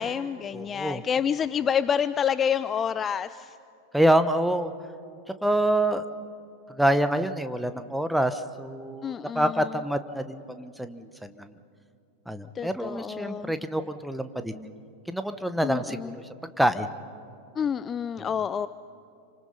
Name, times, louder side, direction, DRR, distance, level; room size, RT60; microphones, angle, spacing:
voice 1, 0.0-3.6 9.0-9.8 12.5-13.5 15.6-16.2 17.6-18.7, left 8 dB, 25° left, 15 dB, 0.4 m, -28 dB
voice 2, 0.5-1.0 3.9-4.7 5.4-6.0 6.7-11.5 12.3-14.7 15.1-16.2 16.6-16.9, right 1 dB, ahead, 10 dB, 1.1 m, -26 dB
28.5 x 25.5 x 5.6 m, 2.6 s
figure-of-eight pair, 90°, 0 cm